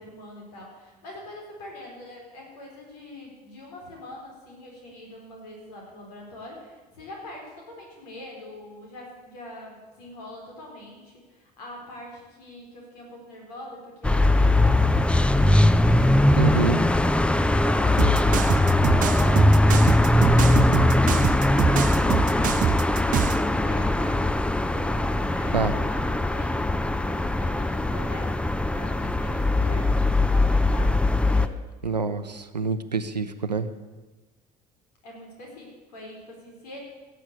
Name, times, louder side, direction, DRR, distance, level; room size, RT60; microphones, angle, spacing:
voice 1, 0.0-22.6 23.1-26.6 27.1-31.6 35.0-36.8, left 1 dB, 70° left, -1 dB, 4.4 m, -43 dB
sound 1, 14.0-31.5, left 1 dB, 5° left, 0.6 m, -21 dB
voice 2, 16.4-16.8 25.5-25.7 31.8-33.7, right 4 dB, 90° right, 11 dB, 0.7 m, -26 dB
sound 2, 18.0-23.4, right 10 dB, 40° right, 0.6 m, -25 dB
17.5 x 7.4 x 8.2 m, 1.2 s
figure-of-eight pair, 60°, 21 cm